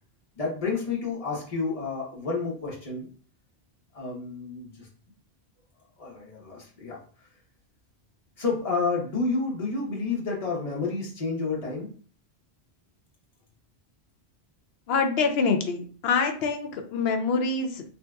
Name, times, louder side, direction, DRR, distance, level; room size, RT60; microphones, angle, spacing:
voice 1, 0.4-3.1 3.9-4.9 6.0-7.0 8.4-11.9, left 4 dB, 35° left, -3 dB, 1.0 m, -30 dB
voice 2, 14.9-17.8, left 4 dB, 70° left, 5 dB, 0.8 m, -25 dB
3.3 x 2.8 x 2.3 m, 0.42 s
omnidirectional pair, 1.1 m